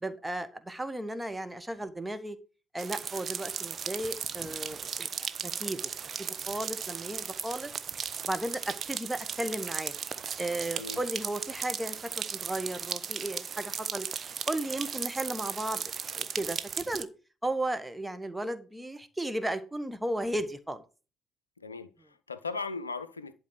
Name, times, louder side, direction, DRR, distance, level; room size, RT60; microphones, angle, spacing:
voice 1, 0.0-2.4 2.7-5.9 6.2-7.7 8.3-9.9 10.4-14.1 14.5-15.8 16.1-17.1 17.4-20.8, right 1 dB, 10° right, 1.3 m, -35 dB
sound 1, 2.8-17.0, right 7 dB, 40° right, 0.7 m, -36 dB
voice 2, 21.6-23.3, left 4 dB, 85° left, 0.5 m, -38 dB
11.0 x 4.5 x 6.4 m
figure-of-eight pair, 50°, 0 cm